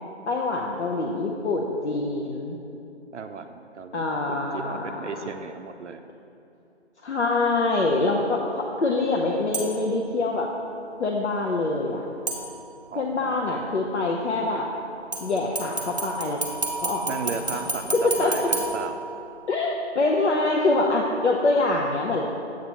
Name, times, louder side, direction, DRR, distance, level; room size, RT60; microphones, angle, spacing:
voice 1, 0.3-2.6 3.9-5.1 7.0-10.5 11.0-12.0 13.0-14.7 15.2-16.4 16.8-17.6 17.9-18.3 19.5-22.2, left 2 dB, 70° left, -1 dB, 0.7 m, -25 dB
voice 2, 3.1-6.0 12.9-13.8 17.1-19.0, right 5 dB, 80° right, 7 dB, 0.5 m, -36 dB
sound 1, 9.5-10.0 12.3-13.0 15.1-19.5 19.9-20.0, right 2 dB, 40° right, 0.7 m, -31 dB
7.5 x 2.9 x 5.6 m, 2.8 s
figure-of-eight pair, 175°, 35 cm